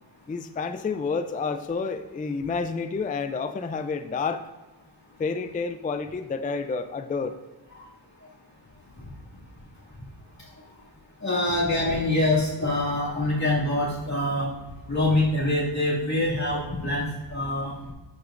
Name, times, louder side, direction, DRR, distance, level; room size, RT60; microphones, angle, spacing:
voice 1, 0.3-4.4 5.2-7.4, left 4 dB, 20° left, 9 dB, 0.3 m, -29 dB
voice 2, 11.2-14.5 14.9-17.7, left 1 dB, 35° left, -7 dB, 2.2 m, -25 dB
11.5 x 6.3 x 2.5 m, 1.2 s
wide cardioid pair, 135°, 47 cm